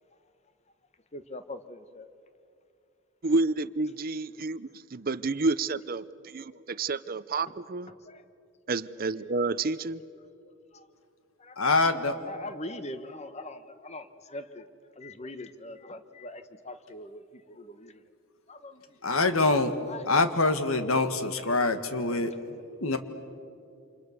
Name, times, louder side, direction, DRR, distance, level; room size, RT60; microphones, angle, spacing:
voice 1, 1.1-2.1 7.5-7.6 7.9-8.3 10.7-10.9 11.4-11.6 12.2-18.0 18.5-19.0 19.9-20.1, left 1 dB, 30° left, 10 dB, 1.1 m, -42 dB
voice 2, 3.2-7.9 8.7-10.0, right 3 dB, 45° right, 16 dB, 0.6 m, -30 dB
voice 3, 11.6-12.2 19.0-23.0, left 3 dB, 80° left, 9 dB, 1.7 m, -25 dB
29.0 x 27.5 x 6.7 m, 2.6 s
head